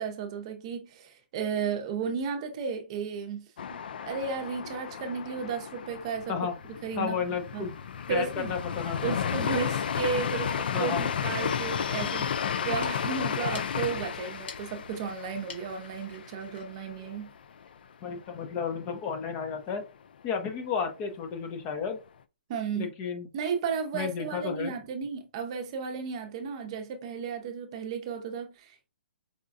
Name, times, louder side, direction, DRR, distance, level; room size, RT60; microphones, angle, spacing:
voice 1, 0.0-3.8 4.1-6.4 6.8-7.1 7.5-7.7 8.1-8.5 9.0-17.3 22.5-22.9 23.3-28.9, right 6 dB, 35° right, 0.7 m, -34 dB
sound 1, 3.6-17.3 17.6-17.7 18.1-18.7, left 7 dB, 60° left, 0.4 m, -33 dB
voice 2, 7.0-7.7 8.1-9.2 10.7-11.1 18.0-19.8 20.2-22.0 22.7-23.3 23.9-24.7, left 6 dB, 20° left, 0.7 m, -32 dB
sound 2, 14.3-17.8, left 4 dB, 80° left, 1.4 m, -51 dB
4.9 x 2.2 x 2.6 m
hypercardioid pair, 165°, 6 cm